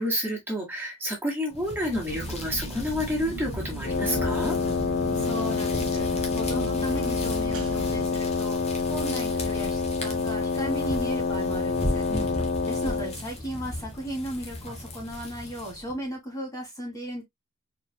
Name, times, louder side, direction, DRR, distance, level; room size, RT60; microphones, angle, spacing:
voice 1, 0.0-4.6 12.1-12.4, equal, 10° right, 2.2 m, -30 dB
sound 1, 1.5-16.0, left 1 dB, 30° left, 1.4 m, -36 dB
sound 2, 2.1-8.1, right 1 dB, 80° right, 1.3 m, -37 dB
Wind instrument woodwind instrument, 3.8-13.2, left 4 dB, 55° left, 0.7 m, -27 dB
voice 2, 5.1-12.3 12.6-17.2, right 1 dB, 15° left, 1.9 m, -36 dB
4.5 x 4.0 x 2.2 m
head